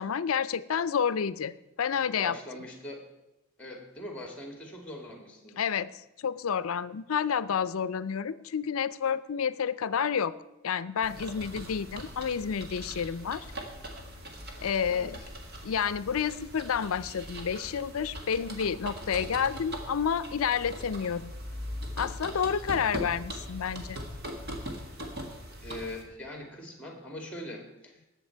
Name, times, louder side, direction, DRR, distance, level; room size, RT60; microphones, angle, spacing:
voice 1, 0.0-2.3 5.6-5.9 6.2-10.3 10.6-13.4 14.6-15.2 15.6-21.3 22.0-24.0, left 7 dB, 80° left, 16 dB, 0.5 m, -30 dB
voice 2, 2.2-3.1 3.6-5.6 14.9-15.3 25.6-28.1, left 1 dB, 5° left, 3 dB, 2.1 m, -42 dB
sound 1, 11.0-26.0, equal, 45° right, 1.7 m, -41 dB
19.0 x 7.2 x 4.5 m, 0.94 s
head